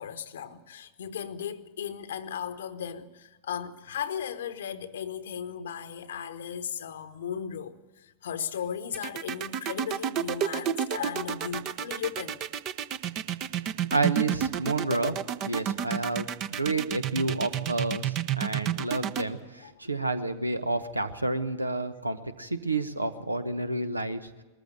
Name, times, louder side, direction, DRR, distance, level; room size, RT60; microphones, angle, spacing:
voice 1, 0.0-12.4 19.6-19.7, left 8 dB, 65° left, 1.0 m, -36 dB
sound 1, 8.9-19.2, right 9 dB, 40° right, 0.9 m, -30 dB
voice 2, 13.9-24.3, right 2 dB, 85° right, 1.0 m, -30 dB
20.5 x 14.5 x 9.1 m
figure-of-eight pair, 90°, 0 cm